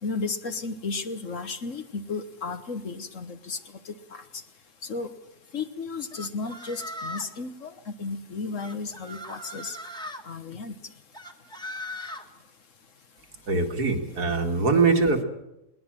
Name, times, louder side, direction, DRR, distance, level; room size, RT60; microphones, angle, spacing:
voice 1, 0.0-3.6 3.8-4.2 4.9-5.1 5.5-9.8 10.2-10.7, left 4 dB, 55° left, 9 dB, 1.5 m, -34 dB
sound 1, 6.1-7.4 8.6-10.2 11.1-12.3, left 1 dB, 5° left, 1.7 m, -38 dB
voice 2, 13.5-15.2, right 4 dB, 75° right, 3 dB, 2.7 m, -22 dB
20.5 x 19.5 x 7.6 m, 0.90 s
omnidirectional pair, 1.7 m